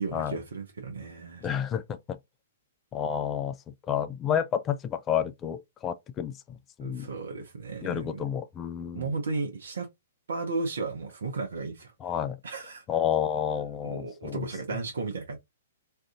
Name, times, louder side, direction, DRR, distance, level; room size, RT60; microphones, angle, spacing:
voice 1, 0.0-1.5 6.8-8.2 8.9-9.9 10.3-11.9 12.4-12.8 13.8-15.4, right 3 dB, 65° right, 0.8 m, -34 dB
voice 2, 1.4-2.2 2.9-7.1 7.8-9.1 12.0-12.4 12.9-14.8, left 9 dB, 20° left, 0.4 m, -30 dB
2.6 x 2.5 x 3.7 m
figure-of-eight pair, 115°, 0 cm